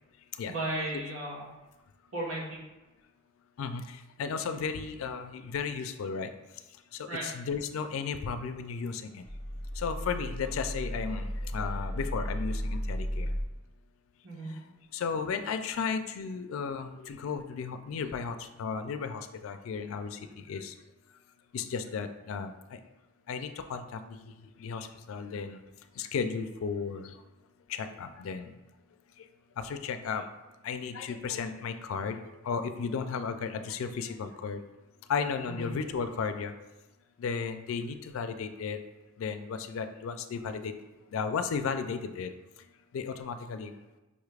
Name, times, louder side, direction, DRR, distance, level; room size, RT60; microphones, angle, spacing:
voice 1, 0.4-1.4 2.1-2.6 7.1-7.3 14.2-14.5 35.5-35.7, right 1 dB, 85° right, -5 dB, 1.4 m, -35 dB
voice 2, 4.2-6.3 7.2-9.0 9.8-13.3 14.9-20.1 20.5-20.7 21.5-22.5 23.3-23.8 24.6-25.6 26.0-27.0 28.0-28.5 29.7-30.2 30.6-32.2 32.5-34.6 35.1-36.5 37.2-38.8 39.2-40.7 41.1-42.3 42.9-43.7, left 5 dB, 90° left, 9 dB, 0.3 m, -34 dB
sound 1, 8.3-13.4, equal, 35° left, 0.6 m, -35 dB
5.2 x 3.2 x 2.4 m, 1.1 s
head